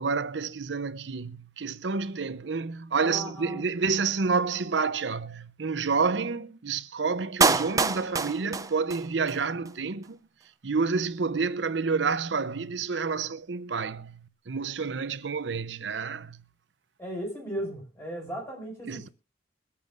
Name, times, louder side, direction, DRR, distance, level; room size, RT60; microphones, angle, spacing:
voice 1, 0.0-10.2 10.6-14.2 14.5-16.4 18.9-19.1, right 4 dB, 80° right, 0.7 m, -29 dB
voice 2, 3.0-3.6 17.0-19.1, right 1 dB, 15° left, 6.0 m, -36 dB
Clapping, 7.4-9.4 9.7-9.8, right 4 dB, 20° right, 0.5 m, -26 dB
23.0 x 8.6 x 2.5 m
head